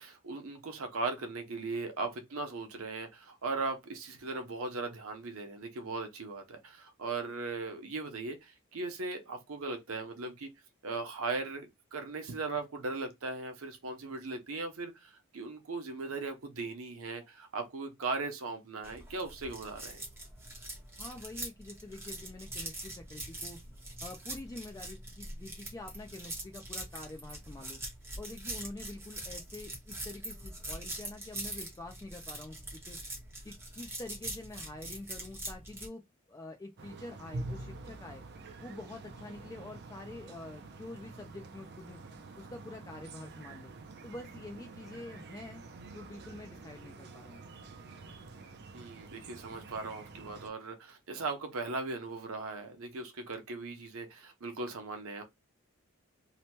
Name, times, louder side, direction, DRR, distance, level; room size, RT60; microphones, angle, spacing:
voice 1, 0.0-10.5 10.8-20.0 48.7-55.2, right 3 dB, 85° right, 0.7 m, -38 dB
sound 1, 18.8-35.9, right 1 dB, 10° right, 0.9 m, -43 dB
voice 2, 21.0-23.6 24.0-27.8 28.2-33.0 33.4-36.0 36.3-38.2 38.6-42.0 42.4-43.7 44.0-45.6 45.9-47.4, left 2 dB, 15° left, 0.3 m, -46 dB
sound 2, 36.8-50.5, right 2 dB, 55° right, 0.5 m, -47 dB
2.8 x 2.2 x 2.9 m
head